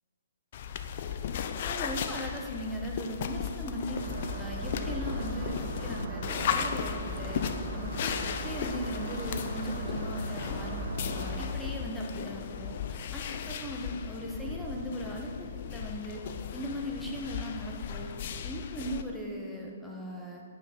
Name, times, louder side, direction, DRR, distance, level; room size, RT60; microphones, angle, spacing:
sound 1, 0.5-19.0, left 8 dB, 45° left, 0.4 m, -36 dB
voice 1, 1.6-4.0 4.4-7.4 7.7-16.2 16.5-18.1 18.4-20.4, equal, ahead, -3 dB, 1.1 m, -38 dB
Engine starting, 3.9-11.5, right 2 dB, 70° right, 1.8 m, -38 dB
8.3 x 5.5 x 4.4 m, 2.4 s
figure-of-eight pair, 125°, 0 cm